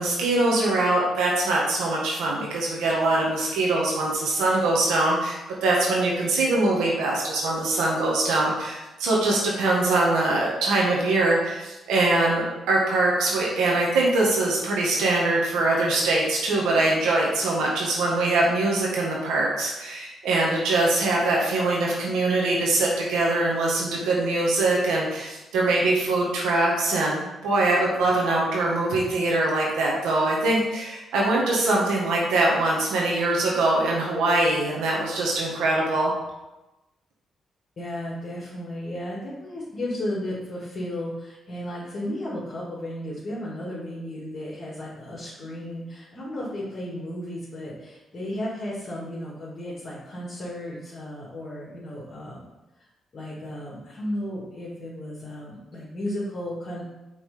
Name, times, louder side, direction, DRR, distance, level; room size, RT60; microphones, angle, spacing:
voice 1, 0.0-36.1, right 2 dB, 90° right, -3 dB, 1.7 m, -23 dB
voice 2, 37.8-52.5 52.8-52.9 53.1-56.8, left 1 dB, 45° left, -8 dB, 2.0 m, -34 dB
5.8 x 3.9 x 5.0 m, 1.0 s
cardioid pair, 70°, 0 cm